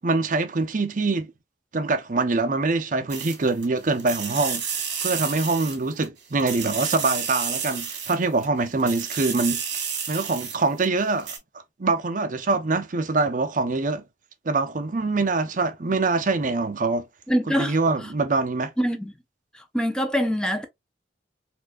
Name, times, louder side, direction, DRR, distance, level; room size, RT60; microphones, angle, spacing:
voice 1, 0.0-1.3 1.7-4.6 5.0-9.6 10.1-11.3 11.8-14.0 14.4-17.0 17.6-18.7, right 3 dB, 45° right, 0.6 m, -24 dB
sound 1, 3.1-3.7 4.0-6.1 6.4-8.5 8.8-10.9 11.2-11.4, right 7 dB, 75° right, 1.3 m, -30 dB
voice 2, 17.3-17.8 18.8-19.1 19.5-20.7, equal, 5° left, 0.5 m, -24 dB
4.3 x 2.6 x 2.3 m
head